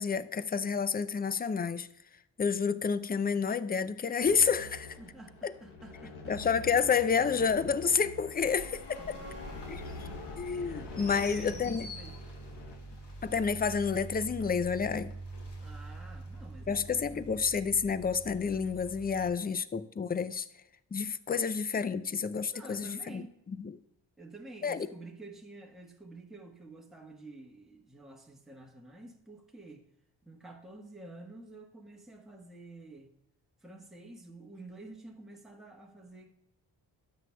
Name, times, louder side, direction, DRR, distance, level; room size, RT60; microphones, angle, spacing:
voice 1, 0.0-1.9 2.4-5.0 5.4-5.5 6.3-9.2 9.7-9.8 10.4-11.9 13.2-15.1 16.7-20.5 20.9-23.2 23.6-23.7 24.6-24.9, left 6 dB, 20° left, 0.4 m, -29 dB
sound 1, 4.2-12.8, left 3 dB, 90° left, 1.1 m, -46 dB
voice 2, 5.0-6.4 9.0-12.2 15.6-17.4 21.3-21.4 22.5-23.4 24.2-29.9 30.2-33.1 33.6-36.3, right 2 dB, ahead, 1.2 m, -50 dB
sound 2, 8.4-19.3, right 1 dB, 60° left, 2.0 m, -44 dB
12.0 x 7.8 x 2.3 m
cardioid pair, 50°, 46 cm